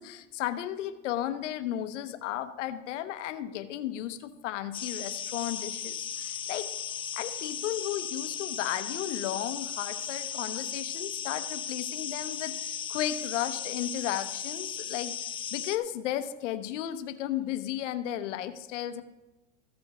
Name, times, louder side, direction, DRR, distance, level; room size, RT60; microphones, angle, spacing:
voice 1, 0.0-6.7 7.1-19.0, left 12 dB, 90° left, 10 dB, 0.9 m, -34 dB
sound 1, 4.7-15.8, left 8 dB, 15° left, 0.3 m, -36 dB
14.5 x 5.2 x 5.9 m, 1.1 s
supercardioid pair, 135°, 35 cm